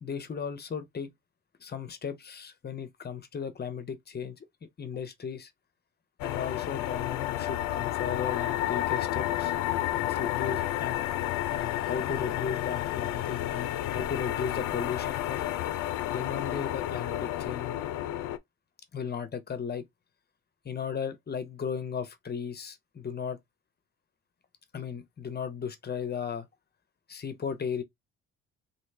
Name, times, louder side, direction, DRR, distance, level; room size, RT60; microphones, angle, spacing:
voice 1, 0.0-1.1 1.6-4.5 4.8-5.5 6.2-9.5 10.0-11.1 11.5-15.4 16.1-17.8 18.9-19.8 20.6-23.4 24.7-26.5 27.1-27.8, left 7 dB, 30° left, 0.7 m, -36 dB
sound 1, 6.2-18.4, left 13 dB, 85° left, 0.5 m, -31 dB
3.1 x 2.7 x 3.2 m
cardioid pair, 95°, 31 cm